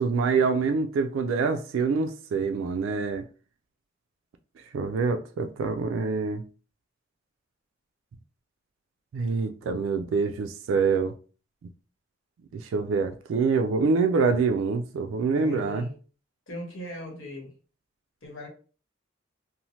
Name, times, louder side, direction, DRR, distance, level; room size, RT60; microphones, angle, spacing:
voice 1, 0.0-3.3 4.7-6.4 9.1-11.1 12.5-15.9, right 4 dB, 85° right, 7 dB, 0.3 m, -25 dB
voice 2, 15.4-15.9 16.5-17.5 18.2-18.5, left 1 dB, 85° left, 0 dB, 1.1 m, -38 dB
2.7 x 2.1 x 3.0 m, 0.37 s
head